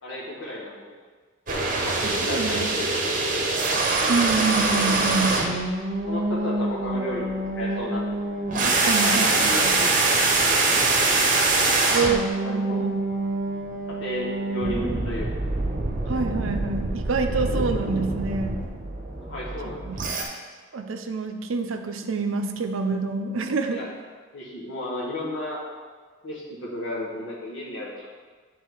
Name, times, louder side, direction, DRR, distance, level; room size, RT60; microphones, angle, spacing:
voice 1, 0.0-0.9 1.5-3.5 6.1-8.2 8.9-11.2 11.7-12.2 12.4-12.8 14.0-15.3 19.2-19.9 23.7-23.9 24.3-25.6 26.2-28.0, left 1 dB, 70° left, -6 dB, 1.3 m, -34 dB
sound 1, 1.5-20.2, right 2 dB, 40° right, 0.9 m, -24 dB
voice 2, 2.0-2.7 4.1-5.4 8.6-9.7 11.9-13.0 16.1-18.6 19.6-20.1 20.7-23.8, right 4 dB, 75° right, 6 dB, 0.6 m, -27 dB
8.4 x 3.8 x 4.6 m, 1.5 s
head